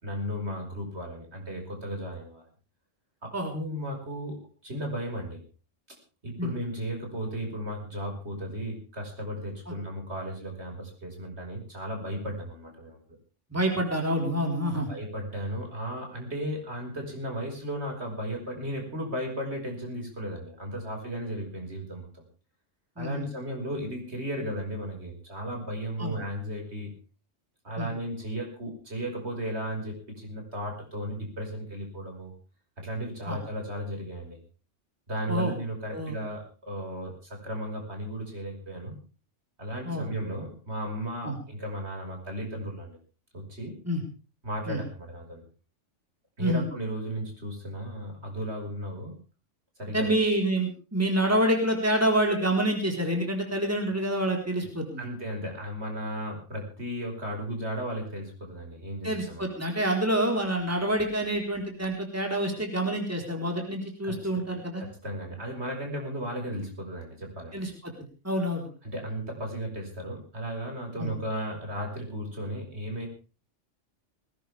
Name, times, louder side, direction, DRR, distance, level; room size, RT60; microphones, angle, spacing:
voice 1, 0.0-2.4 3.2-5.4 6.2-13.0 14.9-22.2 23.0-26.9 27.6-32.3 32.8-34.4 35.1-38.9 39.6-43.0 43.3-43.8 44.4-45.4 46.4-49.1 49.8-50.1 55.0-59.5 64.0-64.1 64.8-67.6 68.8-73.1, equal, 60° right, 2 dB, 5.8 m, -35 dB
voice 2, 13.5-14.9 23.0-23.2 26.0-26.1 27.8-27.9 33.3-33.4 35.3-35.5 35.9-36.1 39.9-40.0 41.2-41.4 43.9-44.0 44.7-44.8 46.4-46.6 49.9-55.0 59.0-64.8 67.5-67.7 68.2-68.7 71.0-71.1, right 1 dB, 10° right, 2 dB, 4.3 m, -27 dB
20.0 x 18.0 x 3.5 m, 0.35 s
omnidirectional pair, 1.3 m